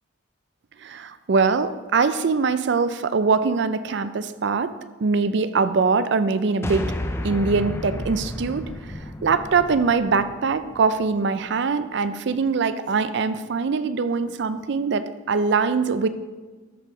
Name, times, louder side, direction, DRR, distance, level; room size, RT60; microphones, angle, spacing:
voice 1, 0.8-4.7 5.0-6.9 7.2-8.7 9.2-16.1, right 4 dB, 60° right, 12 dB, 0.4 m, -22 dB
sound 1, 6.6-11.1, left 1 dB, 15° left, 0.4 m, -32 dB
13.0 x 4.7 x 4.9 m, 1.3 s
head